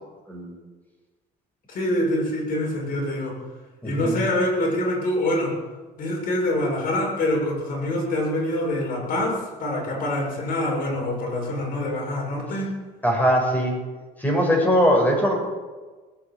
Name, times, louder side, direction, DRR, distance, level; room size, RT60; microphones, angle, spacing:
voice 1, 1.7-3.4 3.8-5.5 6.0-12.8, left 1 dB, 55° left, -1 dB, 6.8 m, -25 dB
voice 2, 3.8-4.2 13.0-13.8 14.2-15.4, equal, 10° left, 0 dB, 6.2 m, -21 dB
19.5 x 8.7 x 8.5 m, 1.3 s
cardioid pair, 110°, 17 cm